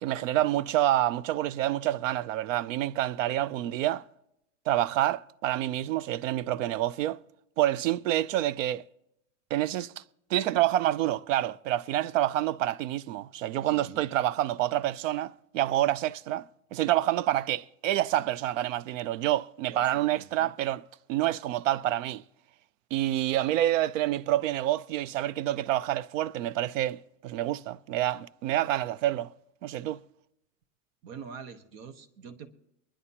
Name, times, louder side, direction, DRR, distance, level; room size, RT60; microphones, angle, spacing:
voice 1, 0.0-4.0 4.7-7.2 7.6-8.8 9.5-10.0 10.3-20.8 21.1-22.2 22.9-29.3 29.6-30.0, right 13 dB, 75° right, 0.6 m, -28 dB
voice 2, 13.6-14.1 19.7-20.5 31.0-32.5, right 6 dB, 50° right, 1.2 m, -45 dB
23.5 x 11.0 x 2.9 m
supercardioid pair, 145°, 38 cm